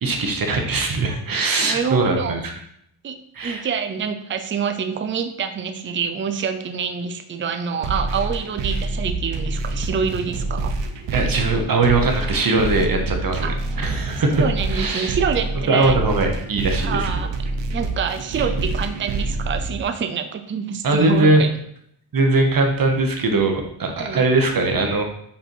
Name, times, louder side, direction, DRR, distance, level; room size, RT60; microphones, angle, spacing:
voice 1, 0.0-2.4 3.3-3.7 11.1-13.5 13.8-14.4 14.7-15.1 15.7-17.1 18.3-18.4 20.8-21.5 22.1-25.0, right 2 dB, 45° right, 4 dB, 1.0 m, -20 dB
voice 2, 1.6-2.4 3.0-3.2 3.4-10.8 13.4-13.6 14.3-16.0 16.8-17.3 17.7-21.5 24.0-24.2, right 6 dB, 25° right, 8 dB, 0.4 m, -26 dB
sound 1, 7.8-19.8, right 3 dB, 65° right, 0.8 m, -26 dB
5.5 x 4.3 x 4.5 m, 0.71 s
wide cardioid pair, 175°, 47 cm